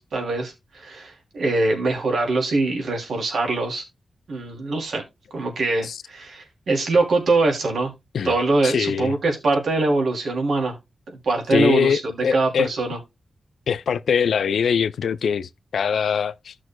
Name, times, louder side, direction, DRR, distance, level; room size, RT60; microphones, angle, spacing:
voice 1, 0.0-3.8 4.3-5.0 5.3-7.9 8.2-10.8 11.2-13.0, right 2 dB, 75° right, 3.0 m, -23 dB
voice 2, 8.6-9.1 11.5-12.7 13.7-16.5, left 7 dB, 90° left, 0.4 m, -22 dB
15.0 x 6.1 x 2.2 m
wide cardioid pair, 95°, 0 cm